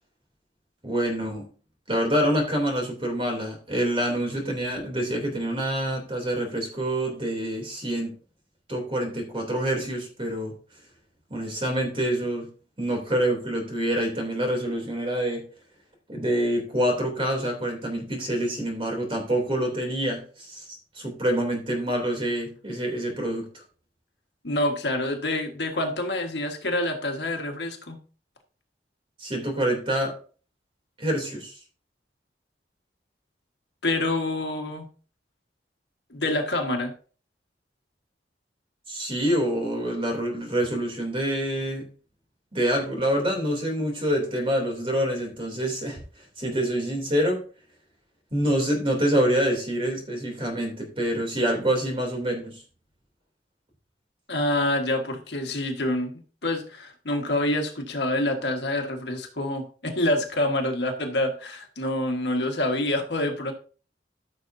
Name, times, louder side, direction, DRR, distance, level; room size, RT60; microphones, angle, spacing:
voice 1, 0.8-1.4 1.9-8.1 8.7-10.5 11.3-12.5 12.8-15.4 16.1-23.6 29.2-30.1 31.0-31.6 38.9-41.9 42.5-46.0 46.4-47.4 48.3-52.6, right 1 dB, 30° right, 1 dB, 3.1 m, -26 dB
voice 2, 24.4-28.0 33.8-34.9 36.1-36.9 54.3-63.5, left 1 dB, 70° left, 3 dB, 1.6 m, -27 dB
14.0 x 6.5 x 2.7 m, 0.39 s
head